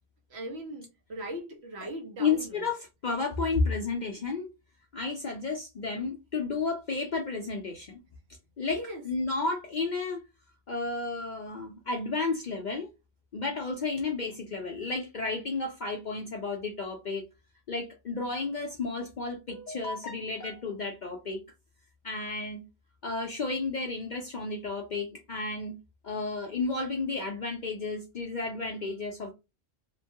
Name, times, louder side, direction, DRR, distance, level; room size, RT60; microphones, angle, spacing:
voice 1, 0.3-2.7 8.6-9.0, right 1 dB, 60° right, 1.1 m, -39 dB
voice 2, 2.2-4.5 4.9-8.0 8.6-8.8 9.0-10.2 10.7-12.9 13.3-17.2 17.7-21.4 22.0-22.6 23.0-25.8 26.0-29.3, left 3 dB, 55° left, 0.5 m, -32 dB
2.9 x 2.2 x 2.7 m
omnidirectional pair, 1.3 m